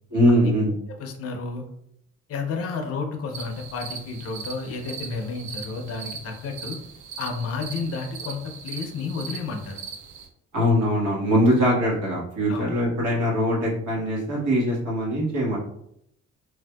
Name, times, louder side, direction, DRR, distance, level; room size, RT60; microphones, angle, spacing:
voice 1, 0.1-0.7 10.5-15.6, equal, 85° right, -5 dB, 1.3 m, -22 dB
voice 2, 1.0-1.7 2.3-6.8 7.2-9.8 12.5-12.7, left 4 dB, 50° left, 3 dB, 0.5 m, -31 dB
sound 1, 3.3-10.3, right 6 dB, 70° right, 0.6 m, -39 dB
3.3 x 2.6 x 2.2 m, 0.76 s
cardioid pair, 90°, 30 cm